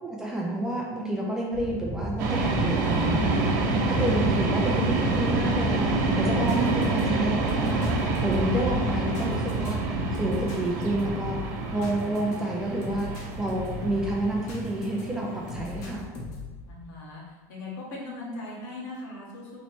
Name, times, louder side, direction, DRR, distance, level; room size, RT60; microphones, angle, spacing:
voice 1, 0.0-11.4 11.7-16.0, right 1 dB, 5° right, -3 dB, 0.3 m, -30 dB
sound 1, 1.5-10.3, right 1 dB, 30° right, 0.8 m, -32 dB
sound 2, 2.2-15.9, right 3 dB, 75° right, 0.7 m, -28 dB
sound 3, 5.8-15.0 15.5-16.6, left 3 dB, 40° left, 0.7 m, -39 dB
voice 2, 16.7-17.2 17.5-19.6, left 2 dB, 70° left, -4 dB, 1.4 m, -39 dB
3.1 x 3.0 x 4.2 m, 1.4 s
cardioid pair, 180°, 10 cm